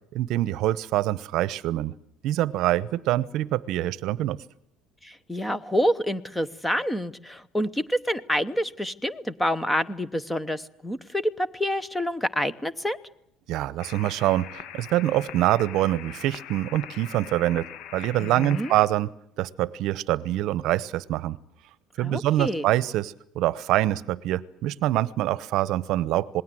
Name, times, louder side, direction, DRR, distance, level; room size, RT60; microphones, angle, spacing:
voice 1, 0.1-1.9 2.2-4.4 13.5-17.7 17.9-19.1 19.4-21.4 22.0-26.4, right 14 dB, 50° right, 20 dB, 0.9 m, -25 dB
voice 2, 5.0-13.0 18.2-18.8 22.0-22.7, equal, 5° left, 18 dB, 0.9 m, -27 dB
sound 1, 13.8-18.9, left 10 dB, 50° left, 1.3 m, -42 dB
27.0 x 20.5 x 7.8 m, 0.75 s
cardioid pair, 170°, 0 cm